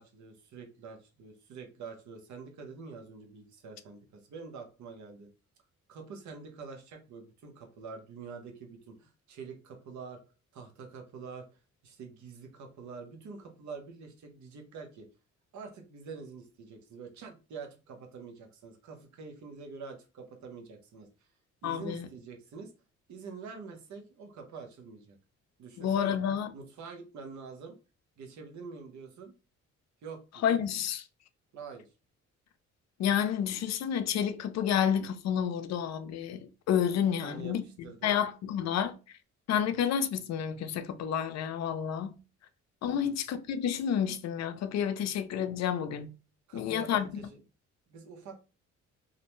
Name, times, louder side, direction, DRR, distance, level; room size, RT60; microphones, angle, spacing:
voice 1, 0.0-5.3 5.9-10.2 10.5-11.5 11.8-15.1 15.5-21.1 21.6-22.7 23.1-25.2 25.6-26.2 26.5-27.8 28.2-29.3 30.0-30.4 31.5-31.9 37.2-38.1 42.8-43.1 46.5-47.4 47.9-48.4, right 5 dB, 70° right, 0.8 m, -46 dB
voice 2, 21.6-22.1 25.8-26.5 30.4-31.0 33.0-37.7 38.0-39.0 39.5-42.2 42.8-46.1 46.5-47.1, left 8 dB, 60° left, 0.5 m, -30 dB
2.5 x 2.1 x 3.0 m
cardioid pair, 90°, 30 cm